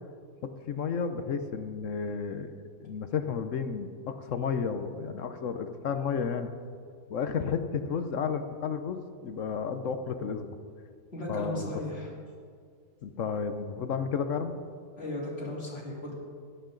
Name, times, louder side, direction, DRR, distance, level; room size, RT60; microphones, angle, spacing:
voice 1, 0.7-2.5 2.8-6.5 7.1-10.5 11.3-11.7 13.0-14.6, left 6 dB, 60° left, 9 dB, 1.0 m, -32 dB
voice 2, 11.1-12.1 15.0-16.1, left 1 dB, 40° left, -5 dB, 3.3 m, -36 dB
16.0 x 12.0 x 3.9 m, 2.1 s
omnidirectional pair, 1.6 m